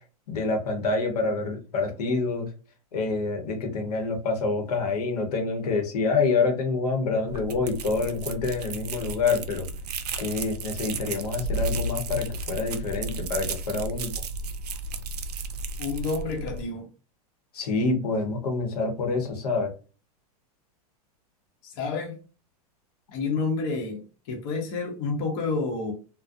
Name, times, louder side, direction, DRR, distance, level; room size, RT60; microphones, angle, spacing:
voice 1, 0.3-2.5 2.9-9.7 10.2-14.1 17.5-19.7, left 3 dB, 75° left, 0.9 m, -27 dB
sound 1, 7.3-16.6, right 2 dB, 90° right, 0.4 m, -33 dB
voice 2, 15.8-16.9 21.6-22.2 23.1-25.9, left 4 dB, 50° left, 0.8 m, -29 dB
2.4 x 2.1 x 2.6 m
hypercardioid pair, 125°, 20 cm